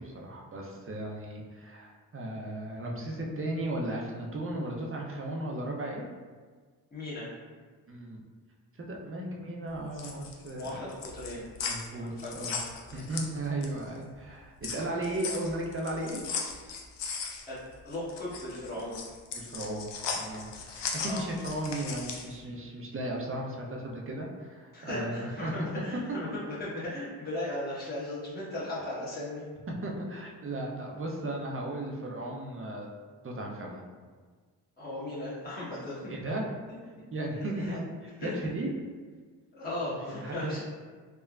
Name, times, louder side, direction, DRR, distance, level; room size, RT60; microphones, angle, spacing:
voice 1, 0.0-6.1 7.9-8.2 8.7-10.9 11.7-12.6 12.9-16.2 19.3-19.9 20.1-25.7 29.8-32.9 33.2-33.9 36.1-36.5 37.1-37.9 38.2-38.7 40.1-40.6, right 1 dB, 30° right, -1 dB, 0.6 m, -35 dB
voice 2, 6.9-7.3 9.2-9.6 10.5-11.5 12.1-12.5 17.4-17.6 17.8-19.0 21.0-21.2 24.7-29.4 34.8-36.1 37.6-37.7 38.2-38.3 39.5-40.6, left 1 dB, 20° left, -10 dB, 1.1 m, -37 dB
sound 1, 9.7-13.9 14.2-22.4, left 5 dB, 65° left, 0.6 m, -37 dB
3.3 x 2.1 x 2.4 m, 1.5 s
supercardioid pair, 50°, 47 cm